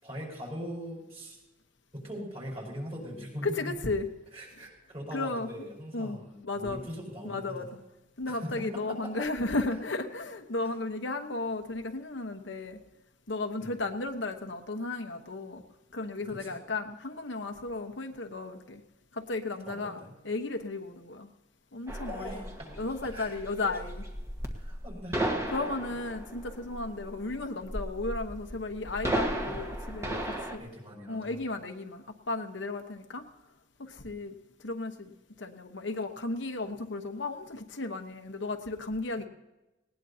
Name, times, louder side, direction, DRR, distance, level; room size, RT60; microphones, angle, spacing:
voice 1, 0.0-1.4 1.9-3.6 4.3-7.7 8.3-9.3 10.6-10.8 13.6-13.8 16.2-16.6 19.7-20.1 22.0-22.7 23.0-23.8 24.5-25.3 29.5-29.6 30.6-31.4 39.1-39.2, equal, 35° right, -3 dB, 5.1 m, -41 dB
voice 2, 3.4-4.1 5.1-5.7 5.9-6.9 7.2-7.7 8.2-12.8 13.3-15.6 15.9-18.8 19.1-21.3 21.7-22.4 22.8-24.0 25.5-30.6 31.1-33.3 33.8-35.1 35.4-39.3, left 2 dB, 75° left, 5 dB, 1.1 m, -34 dB
sound 1, 21.9-30.6, right 1 dB, 15° right, 1.4 m, -35 dB
19.0 x 18.5 x 2.8 m, 1.0 s
head